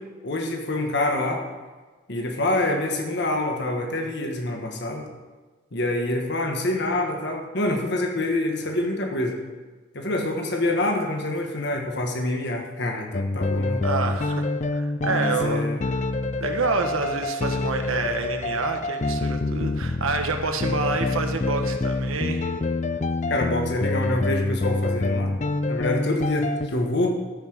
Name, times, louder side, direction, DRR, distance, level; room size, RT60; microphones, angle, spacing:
voice 1, 0.2-1.4 2.1-5.0 5.7-9.3 9.9-13.8 15.0-15.8 23.3-25.4 25.6-27.2, left 1 dB, 55° left, 2 dB, 1.4 m, -26 dB
sound 1, 13.1-26.7, left 2 dB, 35° left, 0.4 m, -26 dB
voice 2, 13.8-16.0 16.4-22.5, right 3 dB, 90° right, 5 dB, 1.3 m, -28 dB
13.5 x 5.7 x 6.3 m, 1.3 s
head